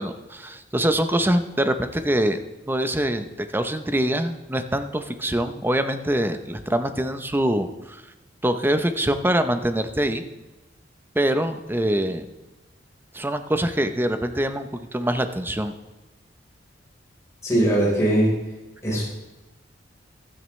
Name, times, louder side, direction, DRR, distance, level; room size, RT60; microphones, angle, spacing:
voice 1, 0.0-3.3 3.5-8.0 8.4-10.2 11.1-12.3 13.1-15.7, right 1 dB, 10° right, 8 dB, 0.7 m, -24 dB
voice 2, 17.4-18.3 18.8-19.0, right 1 dB, 15° left, -6 dB, 4.1 m, -20 dB
15.5 x 12.5 x 3.2 m, 1.1 s
head